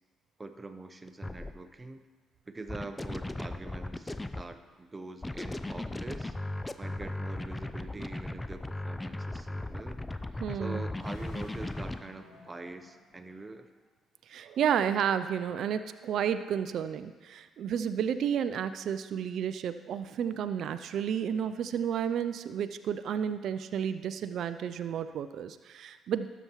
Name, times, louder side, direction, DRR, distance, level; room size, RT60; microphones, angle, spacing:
voice 1, 0.4-2.0 2.5-6.4 6.8-10.0 10.5-13.7, right 3 dB, 25° right, 8 dB, 0.7 m, -44 dB
sound 1, 1.1-1.5 2.7-4.5 5.2-12.0, left 2 dB, 15° left, 0.5 m, -37 dB
voice 2, 10.4-10.8 14.3-26.3, right 8 dB, 65° right, 11 dB, 0.3 m, -31 dB
sound 2, 10.9-13.9, left 2 dB, 75° left, 1.8 m, -56 dB
12.5 x 6.9 x 3.0 m, 1.4 s
hypercardioid pair, 55°, 0 cm